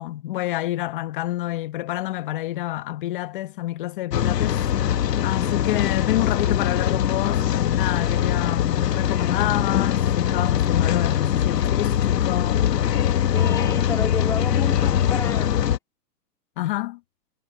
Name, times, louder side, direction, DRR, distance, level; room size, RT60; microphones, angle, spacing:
voice 1, 0.0-4.6 5.2-12.6 16.6-17.0, left 16 dB, 30° left, 1.2 m, -28 dB
Rain, 4.1-15.8, left 10 dB, 75° left, 1.6 m, -22 dB
voice 2, 13.3-15.7, left 4 dB, 5° left, 2.5 m, -31 dB
hypercardioid pair, 160°, 49 cm